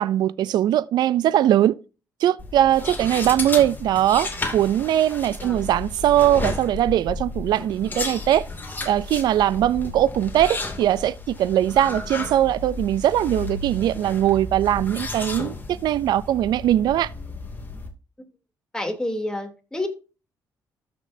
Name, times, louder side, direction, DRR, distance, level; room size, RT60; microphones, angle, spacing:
voice 1, 0.0-1.8 2.2-8.4 8.9-17.1, right 12 dB, 70° right, 0.4 m, -21 dB
sound 1, 2.4-17.9, left 3 dB, 25° left, 2.4 m, -33 dB
voice 2, 18.7-19.9, left 1 dB, 10° left, 2.8 m, -29 dB
13.5 x 6.1 x 2.7 m
cardioid pair, 75°, 7 cm